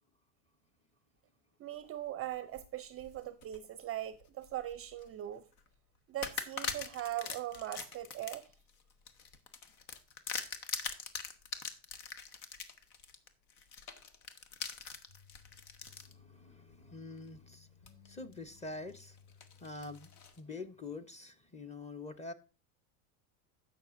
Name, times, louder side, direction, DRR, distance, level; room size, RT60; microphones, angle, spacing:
voice 1, 1.6-5.4 6.1-8.5, right 13 dB, 30° right, 0.5 m, -40 dB
sound 1, 2.3-3.6 4.1-5.1 5.5-5.7 6.2-16.1 16.7-16.8 17.9-18.3 18.7-20.4, left 6 dB, 75° left, 1.3 m, -43 dB
sound 2, 15.1-20.3, left 6 dB, 55° left, 2.0 m, -61 dB
voice 2, 16.0-17.7 18.1-19.2 19.6-20.1 20.4-22.3, left 3 dB, 15° left, 0.8 m, -45 dB
16.0 x 5.8 x 2.5 m
supercardioid pair, 105°, 44 cm